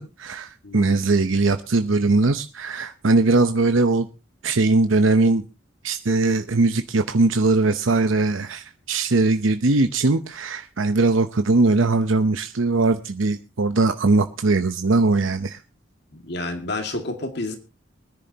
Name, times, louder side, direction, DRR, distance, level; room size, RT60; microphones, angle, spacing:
voice 1, 0.0-4.1 4.4-5.4 5.8-15.6, right 3 dB, 80° right, 0.8 m, -20 dB
voice 2, 0.6-1.0 16.1-17.6, left 2 dB, 55° left, 2.2 m, -30 dB
23.5 x 10.5 x 2.9 m
head